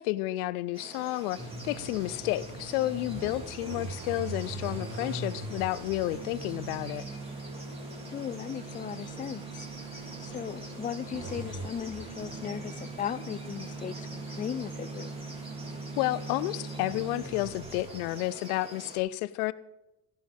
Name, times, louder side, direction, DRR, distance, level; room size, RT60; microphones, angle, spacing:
voice 1, 0.0-1.4 1.6-7.0 16.0-19.5, left 16 dB, 80° left, 18 dB, 0.6 m, -31 dB
sound 1, 0.7-19.0, right 1 dB, 15° right, 3.3 m, -47 dB
sound 2, 1.3-18.2, right 3 dB, 75° right, 3.4 m, -40 dB
voice 2, 8.1-9.7 10.2-15.1, left 8 dB, 20° left, 15 dB, 0.5 m, -37 dB
15.0 x 11.5 x 3.5 m, 0.93 s
supercardioid pair, 80°, 43 cm